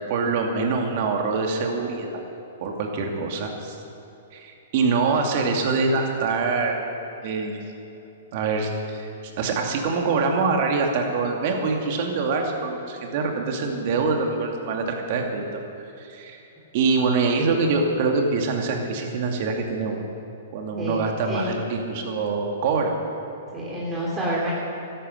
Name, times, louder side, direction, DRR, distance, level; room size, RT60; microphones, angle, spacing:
voice 1, 0.0-2.2 2.6-3.8 4.3-6.8 7.2-7.6 8.3-15.4 16.0-16.4 16.7-20.0 20.5-22.9, right 4 dB, 50° right, 2 dB, 2.5 m, -24 dB
voice 2, 20.8-21.6 23.5-24.5, right 1 dB, 20° right, -6 dB, 3.4 m, -28 dB
13.0 x 11.5 x 8.0 m, 2.8 s
hypercardioid pair, 125°, 0 cm